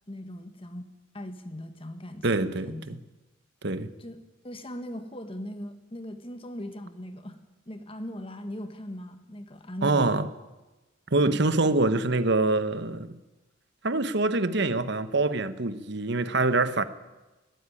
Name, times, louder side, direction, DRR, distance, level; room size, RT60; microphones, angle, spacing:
voice 1, 0.1-0.9 1.1-3.0 4.0-4.2 4.4-7.4 7.7-10.2 11.9-12.0, left 1 dB, 25° left, 1.5 m, -39 dB
voice 2, 2.2-3.0 3.6-3.9 9.8-10.3 11.1-13.2 13.8-16.8, right 2 dB, 60° right, 1.1 m, -25 dB
20.5 x 15.0 x 9.9 m
head